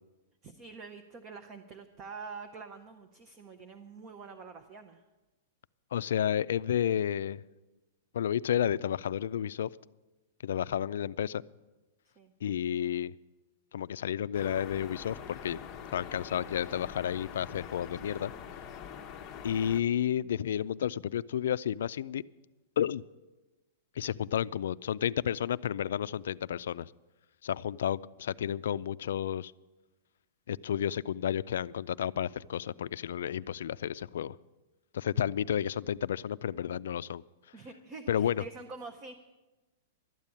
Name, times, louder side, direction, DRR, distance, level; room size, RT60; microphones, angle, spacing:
voice 1, 0.4-5.0 5.9-6.0 12.2-12.3 37.5-39.1, right 4 dB, 20° right, 7 dB, 0.6 m, -46 dB
voice 2, 5.9-7.4 8.1-9.7 10.4-11.4 12.4-13.1 13.7-18.3 19.4-22.2 22.8-23.1 24.0-26.9 27.4-29.5 30.5-34.4 34.9-37.2 38.1-38.4, left 10 dB, 70° left, 18 dB, 0.3 m, -31 dB
sound 1, 14.3-19.8, left 8 dB, 20° left, 0.8 m, -44 dB
12.5 x 9.0 x 8.4 m, 1.1 s
supercardioid pair, 175°, 0 cm